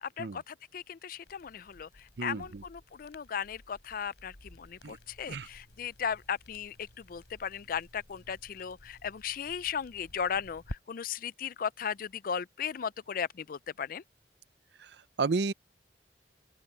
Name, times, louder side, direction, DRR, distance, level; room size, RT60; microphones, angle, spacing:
voice 1, 0.0-14.0, left 7 dB, 55° left, 0.4 m, -36 dB
Crackle, 1.2-10.8, left 1 dB, 75° left, 3.7 m, -52 dB
voice 2, 2.2-2.6 4.8-5.0 5.3-5.5 14.8-15.5, right 4 dB, 70° right, 0.6 m, -32 dB
open air
head